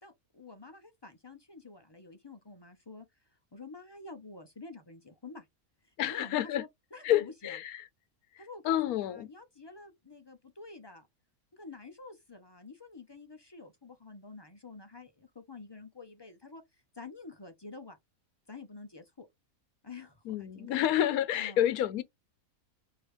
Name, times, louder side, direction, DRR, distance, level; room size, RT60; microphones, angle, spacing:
voice 1, 0.0-3.1 3.3-5.5 5.8-7.6 8.4-11.1 11.5-16.6 16.9-18.0 18.5-19.3 19.8-21.1 21.3-21.6, left 3 dB, 25° left, 0.5 m, -48 dB
voice 2, 6.0-6.6 7.0-7.8 8.3-9.3 20.3-22.0, left 12 dB, 85° left, 1.1 m, -29 dB
4.8 x 3.1 x 3.2 m
omnidirectional pair, 1.5 m